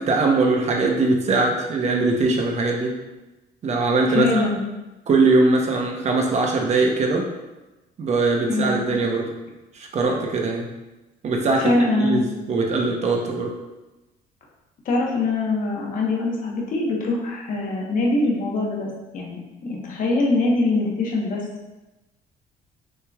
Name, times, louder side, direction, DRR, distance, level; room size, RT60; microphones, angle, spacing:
voice 1, 0.0-2.9 3.6-4.4 5.1-7.3 8.0-9.3 9.7-10.7 11.2-11.7 12.0-13.5, right 3 dB, 40° right, 0 dB, 0.9 m, -21 dB
voice 2, 4.1-4.6 8.4-8.8 11.6-12.2 14.8-18.9 19.1-21.4, left 2 dB, 50° left, -2 dB, 1.2 m, -23 dB
6.3 x 3.1 x 2.4 m, 1.1 s
cardioid pair, 110°, 17 cm